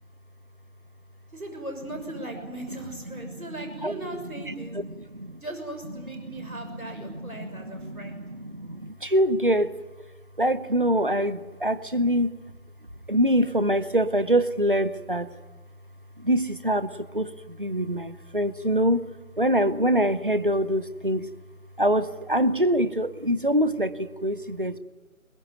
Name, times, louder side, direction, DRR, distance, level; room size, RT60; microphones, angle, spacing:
voice 1, 1.3-4.8 5.4-8.2, right 2 dB, 80° right, 4 dB, 6.5 m, -38 dB
voice 2, 3.1-4.0 4.5-5.4 6.2-9.7 10.4-12.4 13.1-15.3 16.2-19.0 19.4-21.3 21.8-24.8, equal, 40° right, 14 dB, 0.8 m, -25 dB
22.5 x 22.0 x 9.4 m, 1.2 s
figure-of-eight pair, 165°, 42 cm